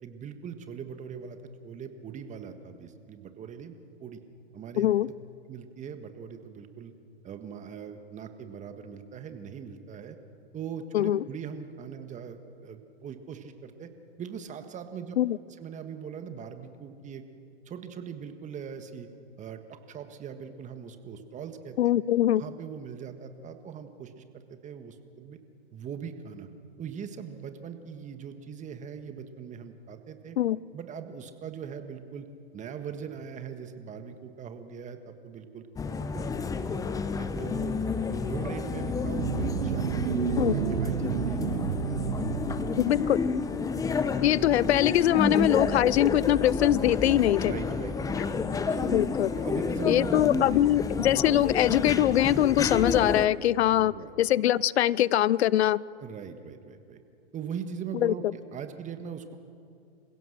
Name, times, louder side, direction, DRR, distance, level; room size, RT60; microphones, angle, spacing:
voice 1, 0.0-1.4 1.6-4.2 4.5-5.1 5.5-6.9 7.2-10.2 10.5-13.9 14.2-15.2 15.6-17.2 17.6-19.1 19.4-19.6 19.9-21.8 22.4-25.4 25.7-26.5 26.8-30.4 30.7-32.3 32.5-35.7 36.0-36.6 37.2-37.8 38.1-43.1 47.1-48.4 48.6-48.9 49.3-50.5 53.7-54.1 56.0-57.0 57.3-59.4, right 7 dB, 20° right, 8 dB, 1.6 m, -41 dB
voice 2, 4.8-5.1 10.9-11.2 15.2-15.4 21.8-22.4 30.4-30.6 40.4-40.5 42.8-43.2 44.2-47.5 48.8-49.3 49.9-55.8 58.0-58.1, left 12 dB, 75° left, 23 dB, 0.5 m, -23 dB
sound 1, 35.8-53.3, left 4 dB, 10° left, 0.8 m, -30 dB
sound 2, 38.7-43.6, right 10 dB, 75° right, 0.9 m, -31 dB
27.5 x 16.5 x 6.6 m, 2.6 s
hypercardioid pair, 115°, 33 cm